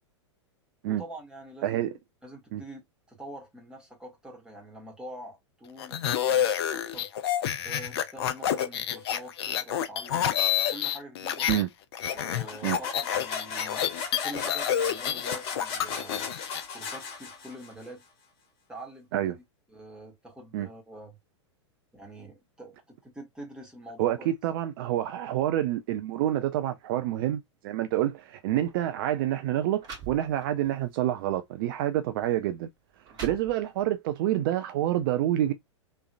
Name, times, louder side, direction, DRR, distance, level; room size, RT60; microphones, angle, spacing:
voice 1, 0.9-2.8 3.1-7.1 7.6-11.5 12.1-16.3 16.7-18.0 18.7-19.3 19.7-21.2 21.9-24.3 33.1-33.4, right 1 dB, 5° right, 1.9 m, -45 dB
sound 1, 5.8-11.6 11.9-16.6, left 10 dB, 60° left, 0.7 m, -28 dB
sound 2, 12.2-17.8, left 6 dB, 45° left, 1.5 m, -36 dB
voice 2, 24.0-32.7 33.2-35.5, right 12 dB, 50° right, 0.5 m, -27 dB
sound 3, 28.5-28.7 29.4-29.5 29.8-30.7 31.3-31.4 32.2-32.3 32.8-34.0, right 7 dB, 25° right, 2.0 m, -43 dB
3.4 x 3.3 x 2.4 m
figure-of-eight pair, 100°, 15 cm